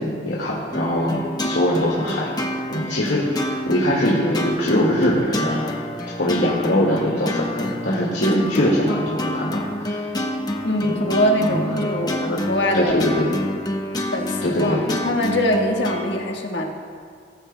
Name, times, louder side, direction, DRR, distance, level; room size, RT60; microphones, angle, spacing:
voice 1, 0.0-2.3 2.7-5.8 6.1-10.1 10.8-12.4 12.7-13.3 14.4-14.9, left 1 dB, 85° left, -4 dB, 2.0 m, -22 dB
sound 1, 0.7-16.2, left 1 dB, 25° left, 0.9 m, -28 dB
voice 2, 10.6-13.0 14.1-16.7, equal, 70° left, 1 dB, 1.5 m, -23 dB
19.0 x 14.0 x 2.3 m, 2.1 s
head